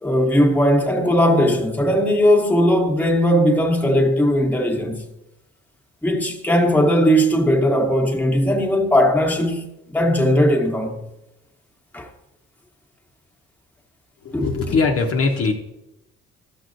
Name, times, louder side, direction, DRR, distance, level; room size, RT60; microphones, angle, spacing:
voice 1, 0.0-5.0 6.0-11.0 11.9-12.1 14.3-14.7, equal, 5° left, 1.1 m, -18 dB
voice 2, 14.2-15.5, left 4 dB, 50° left, 0.8 m, -20 dB
12.5 x 6.1 x 2.6 m
cardioid pair, 90°, 30 cm